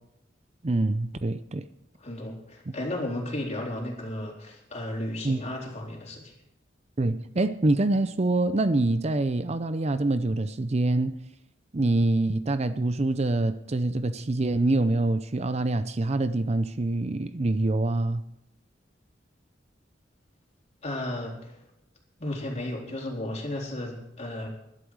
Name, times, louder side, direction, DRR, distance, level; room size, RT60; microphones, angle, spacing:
voice 1, 0.6-1.7 5.2-5.4 7.0-11.2 11.7-18.2, right 2 dB, 35° right, 0.6 m, -25 dB
voice 2, 2.0-6.3 20.8-21.6 22.2-24.5, left 1 dB, 40° left, 3.8 m, -34 dB
20.5 x 11.5 x 4.9 m
head